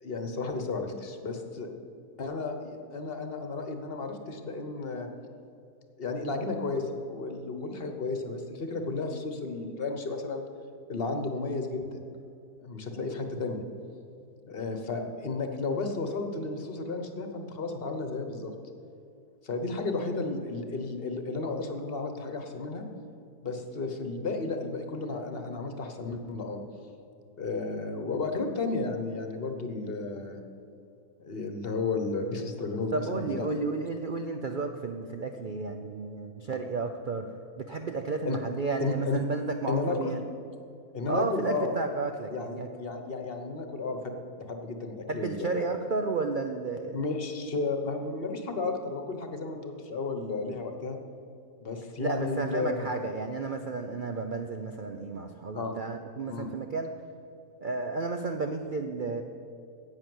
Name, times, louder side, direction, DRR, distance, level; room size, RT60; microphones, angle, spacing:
voice 1, 0.0-1.7 2.2-5.1 6.0-10.4 10.9-12.0 12.6-13.6 14.5-18.5 19.4-22.8 23.4-26.6 27.4-30.4 31.2-33.5 38.2-38.4 38.8-39.2 39.7-40.2 40.9-41.8 42.3-45.7 46.9-51.0 51.6-52.9 55.5-55.7 56.2-56.5, left 3 dB, 40° left, 5 dB, 1.2 m, -33 dB
voice 2, 32.9-40.2 41.1-42.7 45.1-47.0 52.0-56.9 57.6-59.2, right 4 dB, 70° right, 5 dB, 0.4 m, -32 dB
10.5 x 8.6 x 7.8 m, 2.6 s
omnidirectional pair, 1.7 m